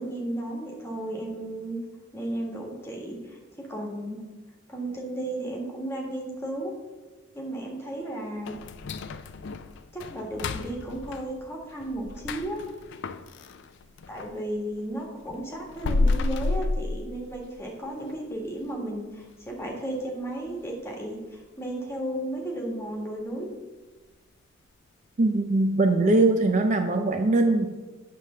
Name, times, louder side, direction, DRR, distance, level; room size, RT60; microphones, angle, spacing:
voice 1, 0.0-1.8 2.1-4.2 4.7-6.7 7.3-8.5 9.9-12.6 14.1-23.5, right 1 dB, 10° left, -1 dB, 1.4 m, -34 dB
sound 1, 8.4-14.4 14.8-17.6 18.0-18.1 18.6-18.7 19.2-19.5 19.8-19.9 20.5-20.6, left 3 dB, 60° left, 0.4 m, -31 dB
voice 2, 25.2-27.7, right 2 dB, 35° right, 5 dB, 0.5 m, -21 dB
9.2 x 3.3 x 6.5 m, 1.2 s
head